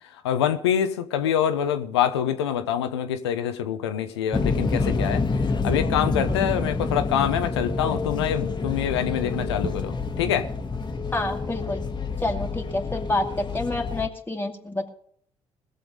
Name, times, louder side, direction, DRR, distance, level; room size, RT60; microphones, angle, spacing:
voice 1, 0.2-5.2 5.6-10.5, left 9 dB, 90° left, 0.9 m, -25 dB
sound 1, 4.3-14.1, left 4 dB, 35° left, 1.5 m, -27 dB
voice 2, 11.1-11.8 12.2-14.9, left 2 dB, 15° left, 2.0 m, -28 dB
20.5 x 7.0 x 5.3 m
hypercardioid pair, 50°, 13 cm